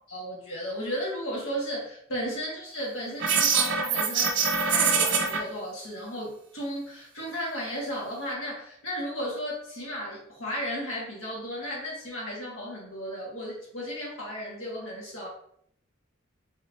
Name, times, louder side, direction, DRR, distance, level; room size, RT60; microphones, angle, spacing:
voice 1, 0.1-4.3 4.6-15.3, equal, 80° left, -5 dB, 1.6 m, -34 dB
sound 1, 3.2-5.4, right 5 dB, 60° right, 0.6 m, -24 dB
3.7 x 2.7 x 3.4 m, 0.69 s
head